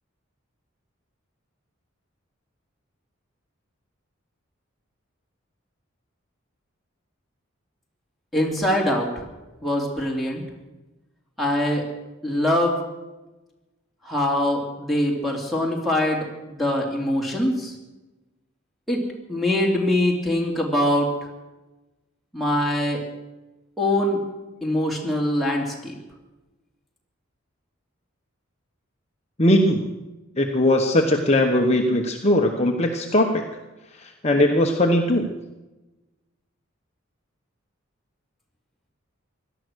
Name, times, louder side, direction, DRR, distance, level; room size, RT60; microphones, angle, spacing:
voice 1, 8.3-9.1 9.6-10.4 11.4-11.8 12.2-12.8 14.0-17.7 18.9-19.0 19.3-21.1 22.3-23.0 23.8-24.2 24.6-25.9, left 1 dB, ahead, -3 dB, 2.9 m, -23 dB
voice 2, 29.4-29.9 30.4-33.4 34.0-35.3, left 1 dB, 30° left, 3 dB, 1.1 m, -20 dB
17.5 x 12.5 x 6.4 m, 1.1 s
head